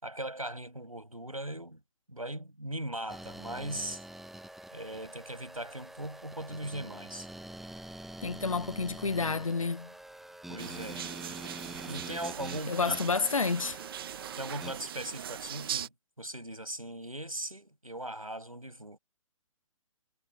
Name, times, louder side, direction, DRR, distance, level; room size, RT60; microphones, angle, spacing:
voice 1, 0.0-1.8 2.1-4.0 4.7-7.3 10.5-11.1 11.9-13.1 14.4-15.9 16.2-19.0, right 1 dB, 90° right, 6.4 m, -39 dB
sound 1, 3.1-14.7, right 1 dB, ahead, 1.2 m, -46 dB
voice 2, 8.2-9.9 12.7-13.8, left 4 dB, 75° left, 1.2 m, -30 dB
sound 2, 10.6-15.9, right 10 dB, 40° right, 1.4 m, -40 dB
figure-of-eight pair, 125°, 17 cm